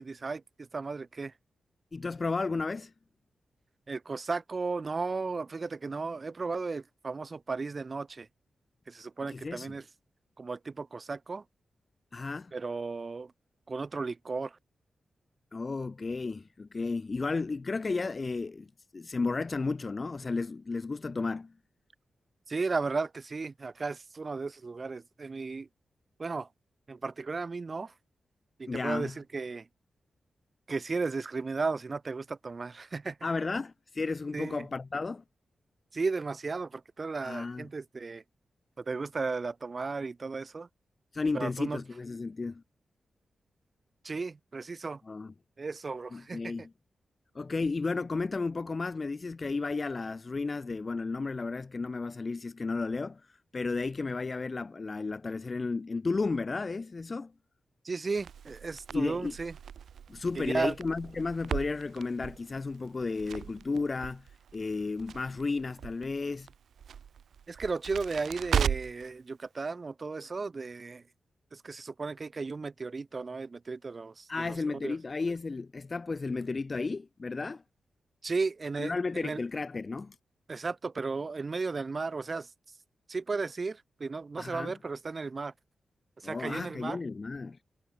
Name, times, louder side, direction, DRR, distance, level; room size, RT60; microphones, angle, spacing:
voice 1, 0.0-1.3 3.9-8.3 8.9-9.8 10.4-11.4 12.5-13.3 13.7-14.6 22.5-25.7 26.2-26.5 26.9-27.9 28.6-29.7 30.7-33.2 34.3-34.7 35.9-38.2 38.8-40.7 41.3-41.8 44.0-45.0 45.6-46.7 57.8-59.5 60.4-60.8 67.5-71.0 71.5-75.0 78.2-79.4 80.5-82.5 83.1-85.5 86.2-87.0, right 4 dB, 30° right, 0.7 m, -35 dB
voice 2, 1.9-2.9 9.3-9.7 12.1-12.5 15.5-18.7 18.9-21.5 28.7-29.1 33.2-35.2 37.2-37.6 41.1-42.6 45.1-45.3 46.1-46.6 47.3-57.3 58.9-59.3 60.1-66.5 74.3-77.6 78.8-80.2 84.4-84.7 86.2-87.6, left 3 dB, 30° left, 0.7 m, -33 dB
Crackle, 58.2-69.1, right 8 dB, 80° right, 0.4 m, -37 dB
wide cardioid pair, 155°, 0 cm